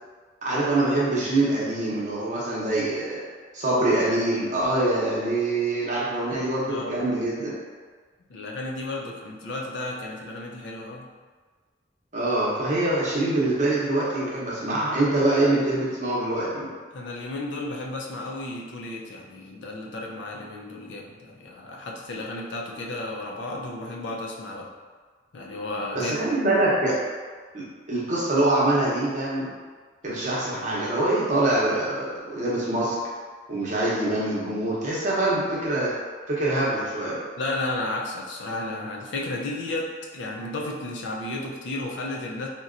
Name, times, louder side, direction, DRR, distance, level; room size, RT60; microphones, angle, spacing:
voice 1, 0.4-3.2 3.5-7.6 12.1-16.7 25.9-27.0 27.5-29.5 30.0-32.9 33.5-35.9 36.3-37.2, right 2 dB, 40° right, -6 dB, 0.8 m, -24 dB
voice 2, 6.7-7.1 8.3-11.1 16.9-24.7 25.3-26.3 37.4-42.5, left 2 dB, 75° left, -1 dB, 0.4 m, -33 dB
4.0 x 2.2 x 2.4 m, 1.5 s
head